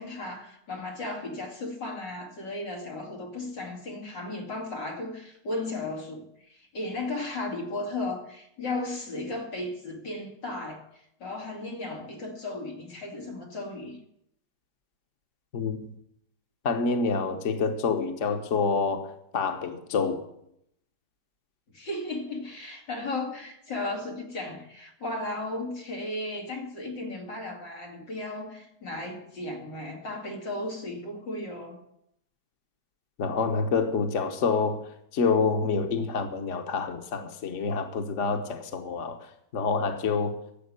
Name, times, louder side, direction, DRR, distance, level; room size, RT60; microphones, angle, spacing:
voice 1, 0.0-10.8 11.2-14.0 21.7-31.8, left 2 dB, 90° left, 3.2 m, -35 dB
voice 2, 16.6-20.2 33.2-34.8 35.1-39.2 39.5-40.3, left 4 dB, 50° left, 1.4 m, -27 dB
12.0 x 7.6 x 9.7 m
omnidirectional pair, 1.9 m